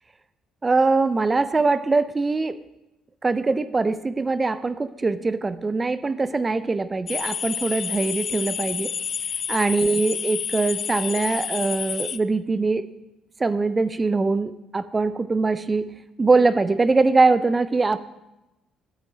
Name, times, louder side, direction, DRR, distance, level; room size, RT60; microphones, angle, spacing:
voice 1, 0.6-2.6 3.2-8.9 9.5-12.9 13.4-15.9 16.2-18.0, right 3 dB, 30° right, 14 dB, 0.4 m, -22 dB
sound 1, 7.1-12.2, left 7 dB, 55° left, 0.3 m, -29 dB
8.9 x 7.9 x 4.0 m, 0.94 s
hypercardioid pair, 60°, 0 cm